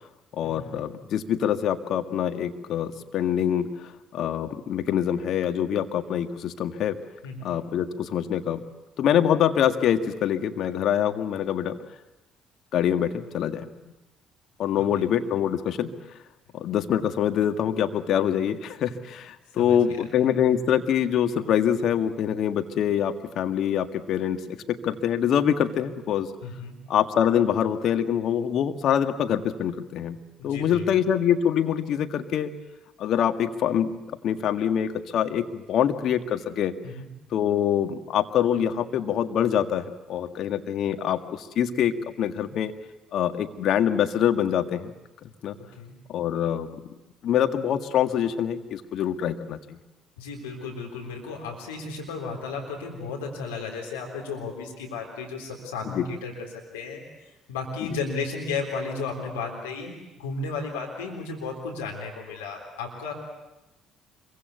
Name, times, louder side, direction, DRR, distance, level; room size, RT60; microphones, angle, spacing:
voice 1, 0.3-7.0 7.4-8.6 9.0-11.8 12.7-13.7 14.6-15.9 16.5-26.3 26.9-30.2 30.4-32.5 33.0-33.9 34.2-36.7 37.3-42.7 43.1-44.9 45.4-45.6 46.1-46.7 47.2-49.8 55.9-56.1 57.8-58.0, left 9 dB, 60° left, 7 dB, 1.8 m, -25 dB
voice 2, 14.8-15.1 19.6-20.1 26.4-26.8 30.4-31.0 36.8-37.1 45.5-46.0 50.2-63.1, left 4 dB, 85° left, 1 dB, 3.9 m, -34 dB
26.5 x 23.5 x 8.3 m, 1.0 s
hypercardioid pair, 55°, 0 cm